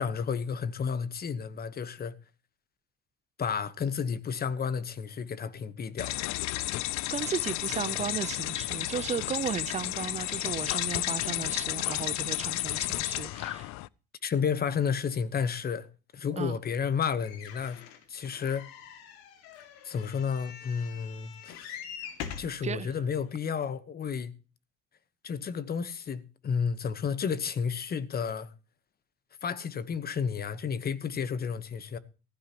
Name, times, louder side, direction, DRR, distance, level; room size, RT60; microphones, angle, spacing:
voice 1, 0.0-2.1 3.4-6.2 14.2-15.9 16.1-17.8 18.1-18.7 19.8-21.8 22.4-24.3 25.2-28.5 29.4-32.0, left 6 dB, 30° left, 1.1 m, -31 dB
sound 1, 6.0-13.9, left 18 dB, 55° left, 0.5 m, -32 dB
voice 2, 7.1-13.7 16.4-16.6 22.6-22.9, right 7 dB, 20° right, 0.6 m, -35 dB
sound 2, 17.2-22.6 23.3-23.4 23.6-23.7, left 8 dB, 85° left, 2.3 m, -44 dB
15.5 x 15.0 x 3.0 m
cardioid pair, 125°, 33 cm